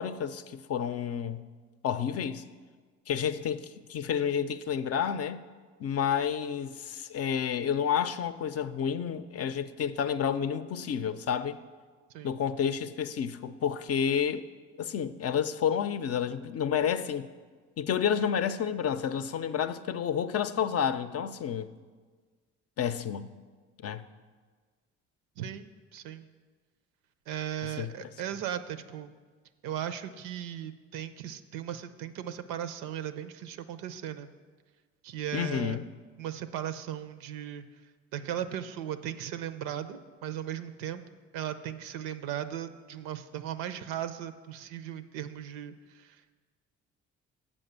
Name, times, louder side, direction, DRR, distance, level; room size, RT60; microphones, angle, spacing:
voice 1, 0.0-1.4 1.8-2.4 3.1-5.4 5.8-11.6 12.2-14.4 14.8-17.3 17.8-21.7 22.8-23.3 23.8-24.0 27.6-27.9 35.3-35.8, left 8 dB, 45° left, 0.5 m, -30 dB
voice 2, 25.4-26.3 27.3-29.1 29.6-34.3 35.0-35.8 36.2-37.6 38.1-41.0 41.3-46.3, right 10 dB, 80° right, 0.6 m, -37 dB
7.3 x 5.3 x 6.7 m
supercardioid pair, 65°, 33 cm